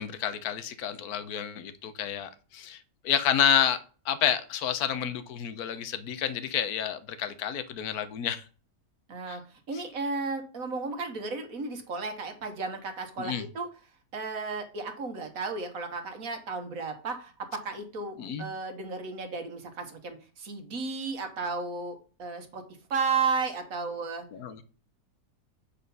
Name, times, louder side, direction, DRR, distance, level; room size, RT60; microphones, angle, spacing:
voice 1, 0.0-2.8 3.0-3.8 4.1-8.4 9.3-9.4 9.7-9.8 13.2-13.4 18.2-18.5 24.3-24.6, left 9 dB, 65° left, 1.3 m, -29 dB
voice 2, 9.1-9.4 9.7-13.7 14.1-22.6 22.9-24.3, right 4 dB, 55° right, 1.7 m, -33 dB
8.3 x 4.4 x 5.4 m
omnidirectional pair, 1.8 m